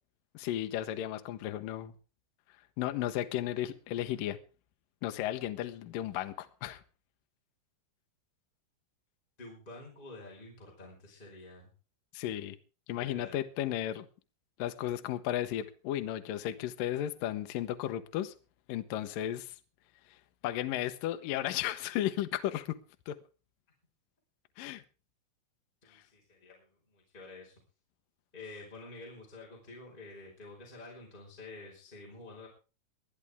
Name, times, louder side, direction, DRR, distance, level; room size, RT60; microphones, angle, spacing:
voice 1, 0.3-1.9 2.8-4.4 5.0-6.8 12.1-12.6 12.9-14.1 14.6-18.3 18.7-19.6 20.1-20.2 20.4-22.8 23.1-23.2 24.6-24.8 25.9-26.0, left 12 dB, 75° left, 9 dB, 2.1 m, -34 dB
voice 2, 9.4-11.7 13.0-13.4 25.8-27.5 28.3-32.5, left 2 dB, 10° left, -3 dB, 4.7 m, -49 dB
22.5 x 12.5 x 3.5 m, 0.35 s
omnidirectional pair, 5.1 m